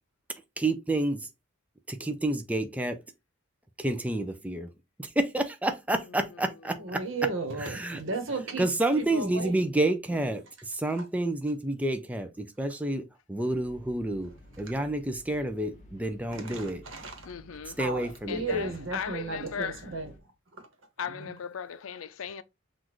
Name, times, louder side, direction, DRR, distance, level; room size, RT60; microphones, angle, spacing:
voice 1, 0.6-1.3 1.9-3.0 3.8-4.7 5.0-7.0 7.6-8.0 8.6-14.3 14.6-16.8 17.8-18.7, right 1 dB, 5° right, 0.5 m, -29 dB
voice 2, 6.8-9.6 10.9-11.1 16.3-17.3 17.7-20.1 20.6-20.7 21.0-21.4, right 3 dB, 75° right, 1.2 m, -35 dB
sound 1, 13.5-20.2, equal, 35° left, 1.3 m, -52 dB
voice 3, 17.2-17.8 18.3-19.9 21.0-22.4, left 7 dB, 80° left, 0.5 m, -37 dB
6.0 x 2.5 x 3.0 m
head